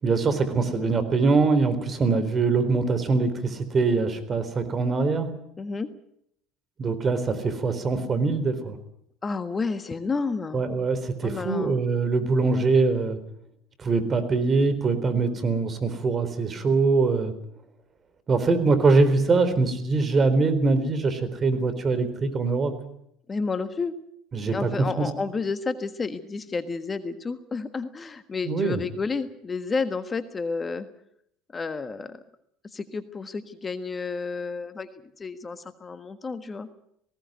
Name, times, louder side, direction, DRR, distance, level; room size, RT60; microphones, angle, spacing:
voice 1, 0.0-5.3 6.8-8.8 10.5-13.2 13.8-17.3 18.3-22.7 24.3-24.7 25.0-25.1 28.4-28.8, right 3 dB, 35° right, 11 dB, 4.1 m, -23 dB
voice 2, 5.6-5.9 9.2-10.6 11.2-11.8 23.3-23.9 24.5-30.9 31.5-32.2 32.7-34.9 35.2-36.7, left 4 dB, 25° left, 10 dB, 1.5 m, -31 dB
19.0 x 17.5 x 9.4 m, 0.73 s
hypercardioid pair, 80°, 0 cm